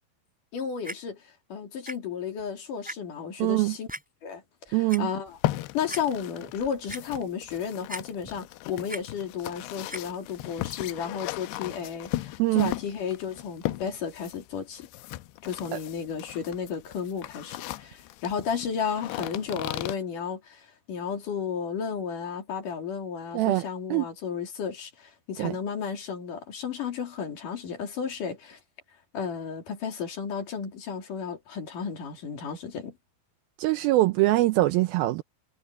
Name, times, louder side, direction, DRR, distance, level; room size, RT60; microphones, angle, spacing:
voice 1, 0.5-1.2 1.5-3.9 4.2-5.4 5.7-14.9 15.4-28.6 29.1-32.9, left 7 dB, 55° left, 4.1 m, -33 dB
Clock, 0.8-0.9 1.9-2.0 2.4-2.5 2.8-2.9 3.9-4.0 4.7-5.0 5.5-5.6 5.9-6.0 6.5-7.0 7.9-8.4 8.7-9.0 9.9-10.0 10.7-10.8, equal, ahead, 2.8 m, -37 dB
voice 2, 3.4-3.8 4.7-5.1 12.4-12.7 15.7-15.8 23.3-23.6 23.9-24.1 25.4-25.6 33.6-35.2, right 18 dB, 80° right, 2.2 m, -23 dB
sound 1, 5.3-20.0, left 17 dB, 85° left, 2.7 m, -37 dB
omnidirectional pair, 4.7 m